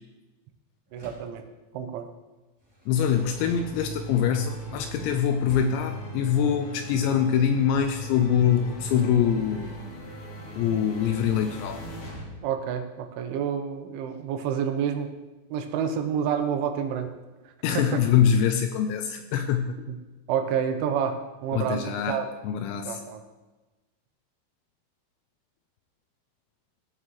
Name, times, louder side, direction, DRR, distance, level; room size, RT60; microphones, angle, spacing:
Door, 0.9-1.4 2.6-4.3 5.4-5.9, right 2 dB, 10° right, 1.6 m, -48 dB
voice 1, 0.9-1.5 1.7-2.1 12.4-15.1 15.5-17.1 17.7-18.1 19.9-20.0 20.3-22.3 22.9-23.2, right 8 dB, 80° right, 6 dB, 3.2 m, -29 dB
voice 2, 2.9-9.8 10.6-11.8 17.6-19.7 21.5-23.0, left 8 dB, 85° left, 7 dB, 2.6 m, -24 dB
sound 1, 3.0-12.2, right 1 dB, 45° left, 3.4 m, -39 dB
16.5 x 6.4 x 3.1 m, 1.1 s
omnidirectional pair, 5.5 m